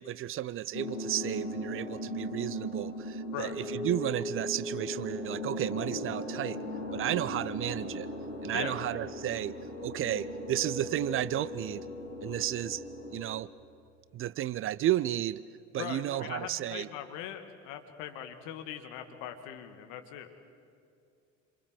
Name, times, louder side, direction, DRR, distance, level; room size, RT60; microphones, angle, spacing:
voice 1, 0.0-6.6 6.9-8.1 8.4-9.6 9.8-11.8 12.2-12.8 13.1-13.5 14.1-15.4 15.7-16.9, right 13 dB, 35° right, 19 dB, 0.6 m, -33 dB
sound 1, 0.7-13.2, left 1 dB, 85° left, 2.6 m, -38 dB
voice 2, 15.8-20.3, left 10 dB, 60° left, 7 dB, 2.1 m, -40 dB
27.5 x 26.0 x 8.0 m, 2.5 s
figure-of-eight pair, 60°, 37 cm